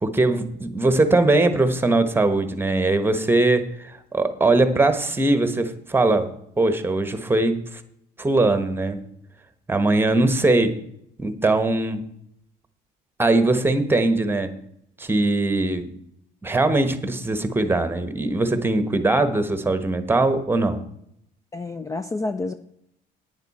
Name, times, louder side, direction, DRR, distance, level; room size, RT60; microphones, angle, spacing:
voice 1, 0.0-7.8 8.2-9.0 9.7-10.8 11.2-12.0 13.2-14.5 15.0-15.9 16.4-20.8, right 2 dB, 15° right, 10 dB, 1.1 m, -21 dB
voice 2, 21.5-22.5, left 3 dB, 20° left, 10 dB, 0.4 m, -28 dB
10.5 x 9.4 x 4.2 m, 0.74 s
cardioid pair, 110°, 17 cm